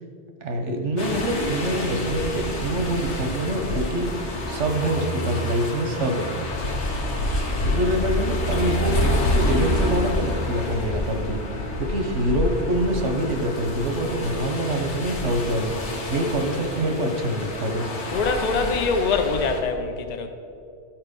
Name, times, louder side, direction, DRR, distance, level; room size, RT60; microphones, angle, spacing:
voice 1, 0.4-4.1 4.5-6.3 7.6-11.4 11.8-15.8 16.1-17.9, right 1 dB, 90° right, 4 dB, 1.3 m, -25 dB
sound 1, 1.0-19.6, left 1 dB, 75° left, 1.4 m, -28 dB
voice 2, 6.8-7.1 17.7-20.3, left 4 dB, 45° left, 6 dB, 0.7 m, -25 dB
12.5 x 4.6 x 5.2 m, 2.5 s
omnidirectional pair, 1.2 m